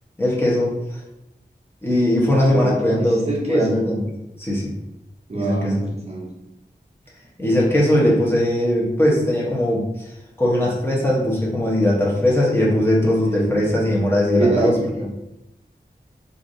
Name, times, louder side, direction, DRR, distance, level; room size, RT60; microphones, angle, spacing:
voice 1, 0.2-1.0 1.8-4.0 4.4-4.7 5.3-5.7 7.4-10.1 10.4-14.8, left 1 dB, 15° left, -5 dB, 1.0 m, -19 dB
voice 2, 2.2-3.9 5.3-6.4 13.3-13.5 14.3-15.1, right 2 dB, 35° right, -3 dB, 0.6 m, -25 dB
3.1 x 2.6 x 2.6 m, 0.91 s
wide cardioid pair, 50°, 18 cm